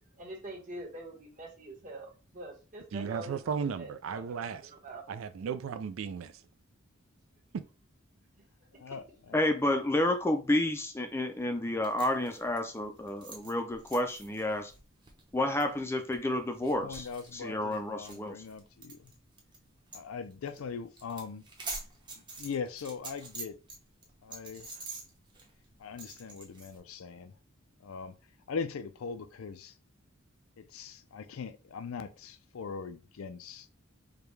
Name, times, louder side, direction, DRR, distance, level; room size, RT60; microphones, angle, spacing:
voice 1, 0.2-5.0, right 1 dB, 40° right, 1.3 m, -45 dB
voice 2, 2.9-4.6 5.1-6.3, right 6 dB, 75° right, 0.3 m, -35 dB
voice 3, 8.8-9.4 16.8-19.1 19.9-21.4 22.4-23.6 24.2-24.7 25.8-27.3 27.8-28.2 28.5-29.7 30.6-33.7, left 5 dB, 85° left, 0.4 m, -40 dB
voice 4, 9.3-14.7 15.3-17.1 17.3-18.4, left 1 dB, 10° left, 0.4 m, -30 dB
sound 1, 11.8-19.6 19.9-20.1 20.3-20.6 20.9-23.8 24.0-26.8, right 3 dB, 20° right, 0.8 m, -46 dB
5.0 x 2.3 x 3.2 m
head